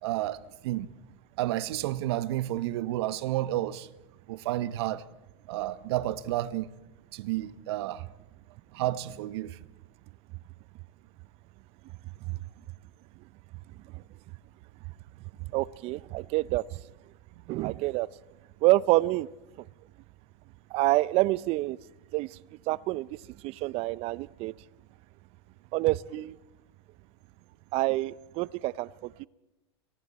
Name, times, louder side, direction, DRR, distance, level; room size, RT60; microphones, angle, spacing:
voice 1, 0.0-0.4 0.6-0.9 1.4-3.9 4.3-5.0 5.5-6.7 7.1-8.0 8.7-9.5, right 14 dB, 65° right, 1.1 m, -30 dB
voice 2, 15.5-16.8 17.5-18.1 18.6-19.3 20.7-21.8 22.1-22.4 22.7-23.1 23.4-24.5 25.7-26.4 27.7-29.3, right 19 dB, 45° right, 0.6 m, -27 dB
29.5 x 24.0 x 4.2 m
hypercardioid pair, 110°, 14 cm